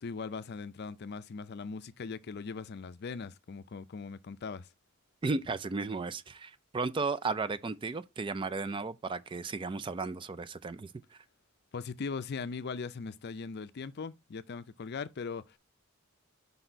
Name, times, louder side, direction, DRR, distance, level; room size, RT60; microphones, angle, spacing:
voice 1, 0.0-4.7 11.7-15.6, left 5 dB, 50° left, 0.5 m, -40 dB
voice 2, 5.2-10.9, right 4 dB, 25° right, 0.3 m, -34 dB
5.4 x 4.1 x 4.4 m
head